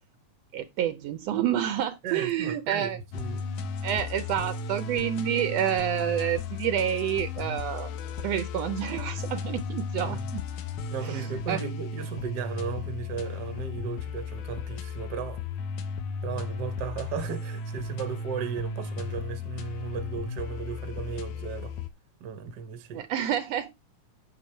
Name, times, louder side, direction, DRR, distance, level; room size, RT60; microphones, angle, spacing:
voice 1, 0.5-3.0 3.8-10.4 11.0-11.6 22.9-23.7, right 10 dB, 75° right, 1.6 m, -29 dB
voice 2, 2.0-3.7 10.0-10.3 10.9-15.4 16.2-21.7 22.2-23.0, right 7 dB, 55° right, 1.2 m, -36 dB
sound 1, 3.1-21.9, left 4 dB, 85° left, 2.3 m, -35 dB
8.6 x 6.1 x 4.4 m
omnidirectional pair, 3.4 m